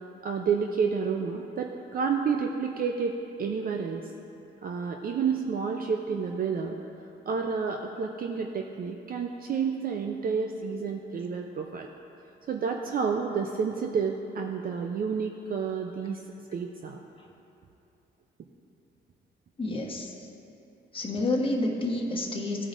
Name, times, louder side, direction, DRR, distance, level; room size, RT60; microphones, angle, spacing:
voice 1, 0.2-4.1 4.6-6.8 7.3-11.9 12.5-16.2 16.5-17.0, right 6 dB, 45° right, 3 dB, 0.5 m, -30 dB
voice 2, 19.6-20.3 20.9-22.7, left 2 dB, 25° left, 0 dB, 1.2 m, -29 dB
14.5 x 5.0 x 2.5 m, 2.8 s
cardioid pair, 90°, 20 cm